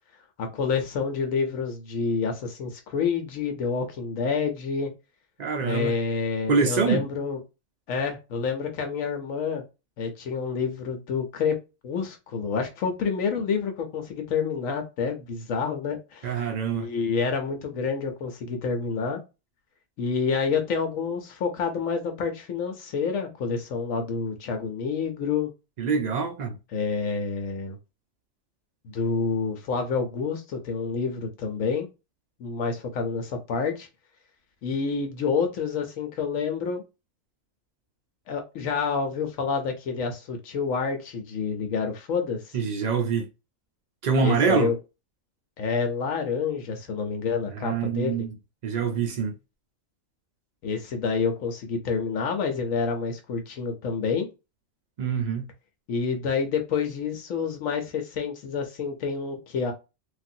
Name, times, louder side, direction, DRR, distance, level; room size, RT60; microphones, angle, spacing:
voice 1, 0.4-4.9 5.6-7.4 7.9-9.6 10.0-11.6 11.8-19.2 20.0-25.5 26.7-27.8 28.8-31.9 32.4-33.9 34.6-36.8 38.3-42.6 44.2-44.8 45.6-48.3 50.6-54.3 55.9-59.7, left 5 dB, 80° left, 1.1 m, -28 dB
voice 2, 5.4-5.9 6.5-7.0 16.2-16.9 25.8-26.6 42.5-43.3 44.0-44.7 47.5-48.3 48.6-49.3 55.0-55.5, right 5 dB, 85° right, 0.3 m, -25 dB
3.2 x 2.5 x 2.6 m
omnidirectional pair, 1.4 m